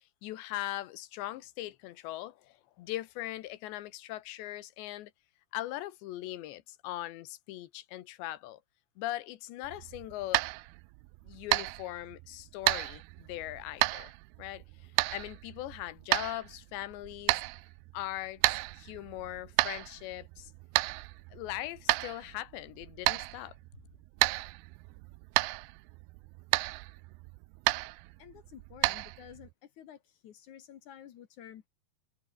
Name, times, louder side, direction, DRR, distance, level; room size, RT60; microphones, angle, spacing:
voice 1, 0.2-5.1 5.5-8.6 9.0-10.4 11.3-14.1 14.4-17.4 17.9-20.5 21.3-23.6, left 15 dB, 90° left, 3.5 m, -40 dB
sound 1, 9.6-29.5, right 23 dB, 80° right, 2.4 m, -33 dB
voice 2, 28.2-31.7, left 10 dB, 60° left, 2.2 m, -51 dB
omnidirectional pair, 4.9 m